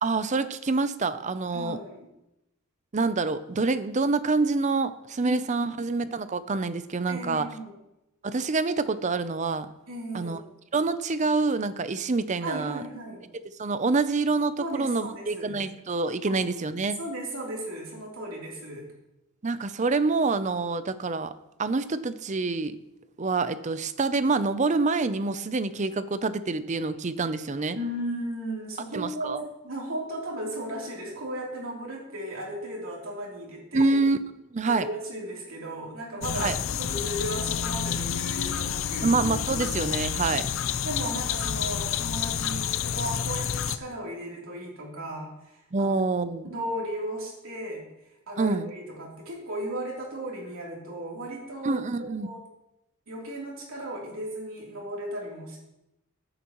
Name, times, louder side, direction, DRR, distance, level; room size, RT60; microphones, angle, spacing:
voice 1, 0.0-1.8 2.9-7.5 8.2-9.7 10.1-10.4 10.7-12.8 13.6-17.0 19.4-21.3 21.6-22.8 23.2-27.8 28.9-29.4 33.7-34.2 34.5-34.9 36.4-36.6 39.0-40.5 45.7-46.5 48.4-48.7 51.6-52.3, right 3 dB, 35° right, 13 dB, 0.5 m, -26 dB
voice 2, 1.5-2.1 5.2-5.7 7.1-7.8 9.9-10.5 12.4-13.3 14.6-15.6 16.3-16.4 17.0-18.9 27.7-34.0 34.6-36.5 36.8-39.2 40.8-45.3 45.8-45.9 46.5-47.8 48.3-52.4 53.1-55.6, right 1 dB, 70° right, -3 dB, 3.2 m, -35 dB
sound 1, 36.2-43.8, left 8 dB, 65° left, 0.5 m, -29 dB
15.0 x 9.1 x 3.0 m, 0.91 s
head